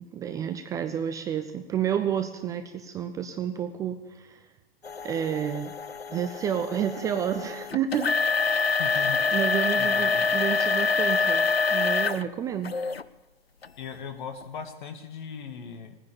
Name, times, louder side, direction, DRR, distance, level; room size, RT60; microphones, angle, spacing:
voice 1, 0.0-4.5 5.0-5.7 6.1-8.8 9.3-12.8, right 9 dB, 10° right, 8 dB, 0.4 m, -30 dB
sound 1, 4.8-12.2 12.6-13.0 13.6-13.7 14.4-14.5, left 4 dB, 85° left, 0.6 m, -26 dB
voice 2, 8.8-9.3 9.8-10.3 13.8-16.0, left 7 dB, 55° left, 7 dB, 1.9 m, -38 dB
19.0 x 9.8 x 6.9 m, 1.2 s
figure-of-eight pair, 110°, 30 cm